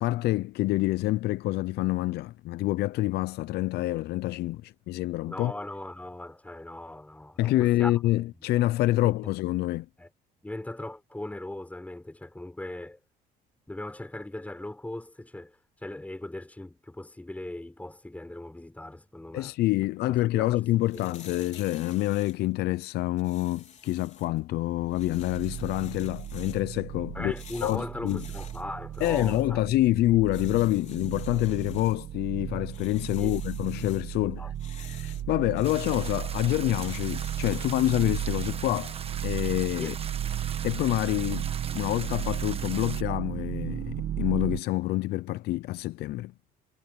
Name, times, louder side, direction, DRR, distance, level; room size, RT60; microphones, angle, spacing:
voice 1, 0.0-5.5 7.4-9.9 19.3-27.3 27.6-28.2 29.0-34.4 34.8-39.0 39.2-39.9 40.6-46.3, left 16 dB, 75° left, 0.6 m, -27 dB
voice 2, 5.3-7.9 9.0-9.3 10.0-10.1 10.4-13.0 13.7-19.5 20.1-20.6 20.9-21.2 27.1-29.6 33.1-33.4 34.2-34.5 39.8-40.0, left 1 dB, 10° left, 5.6 m, -39 dB
sound 1, 20.6-38.2, left 7 dB, 45° left, 4.5 m, -52 dB
sound 2, 24.7-44.6, right 11 dB, 60° right, 1.6 m, -35 dB
sound 3, 35.6-43.0, right 6 dB, 35° right, 1.5 m, -41 dB
cardioid pair, 110°, 17 cm